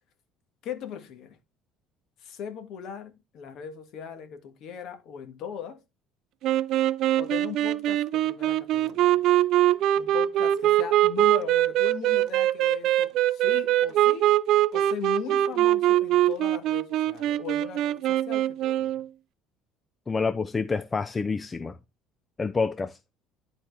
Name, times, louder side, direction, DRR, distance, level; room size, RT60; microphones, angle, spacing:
voice 1, 0.6-1.4 2.2-5.8 7.2-9.2 10.0-14.2 14.7-18.9, left 8 dB, 50° left, 1.7 m, -39 dB
sound 1, 6.4-19.1, right 13 dB, 50° right, 0.5 m, -23 dB
voice 2, 20.1-21.8 22.4-22.9, left 4 dB, 15° left, 0.4 m, -28 dB
11.0 x 4.4 x 3.3 m
cardioid pair, 150°, 0 cm